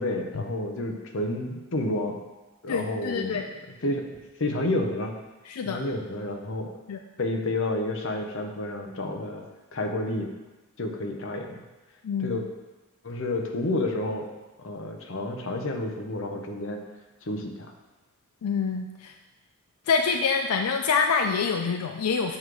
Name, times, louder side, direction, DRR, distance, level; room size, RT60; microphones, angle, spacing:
voice 1, 0.0-2.2 2.6-3.4 3.8-5.1 5.6-6.7 7.2-9.4 9.7-10.3 10.8-11.6 12.2-12.4 13.0-14.3 14.6-16.8 17.2-17.7, left 2 dB, 60° left, 3 dB, 0.8 m, -30 dB
voice 2, 2.7-3.4 5.5-5.8 6.9-7.0 12.0-12.4 18.4-19.1 19.9-22.4, left 5 dB, 85° left, 5 dB, 0.4 m, -26 dB
7.2 x 3.2 x 6.0 m, 1.1 s
head